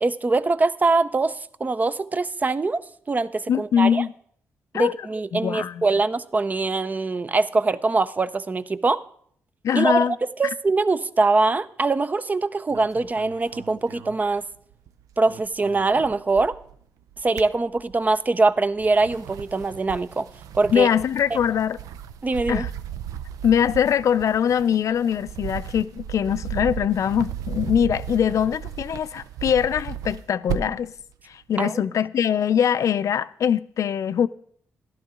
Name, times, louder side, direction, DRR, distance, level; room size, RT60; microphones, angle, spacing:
voice 1, 0.0-2.8 3.1-4.0 4.7-9.0 9.7-10.1 10.4-14.4 15.2-16.6 17.2-20.3 20.5-20.9 22.2-22.7 31.6-31.8, right 3 dB, 30° right, 0.5 m, -23 dB
voice 2, 3.5-4.1 4.7-5.0 5.3-5.8 9.6-10.2 20.7-21.8 22.5-22.7 23.4-30.9 31.3-34.3, left 8 dB, 65° left, 0.4 m, -22 dB
sound 1, 12.7-14.9 15.2-16.8 17.1-18.2 18.7-30.9, right 10 dB, 85° right, 0.5 m, -35 dB
12.0 x 11.5 x 3.7 m
cardioid pair, 70°, 6 cm